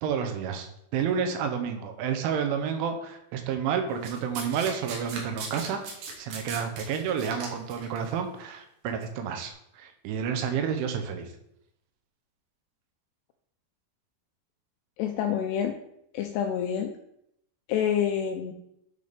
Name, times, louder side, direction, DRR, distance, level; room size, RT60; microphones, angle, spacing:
voice 1, 0.0-5.9 6.2-11.3, right 7 dB, 90° right, 6 dB, 3.4 m, -30 dB
Domestic sounds home sounds, 4.0-8.0 8.9-9.0, right 4 dB, 60° right, 2.6 m, -38 dB
voice 2, 15.0-15.8 16.1-16.9 17.7-18.5, left 9 dB, 85° left, 5 dB, 2.4 m, -27 dB
10.0 x 4.2 x 5.1 m, 0.77 s
omnidirectional pair, 5.4 m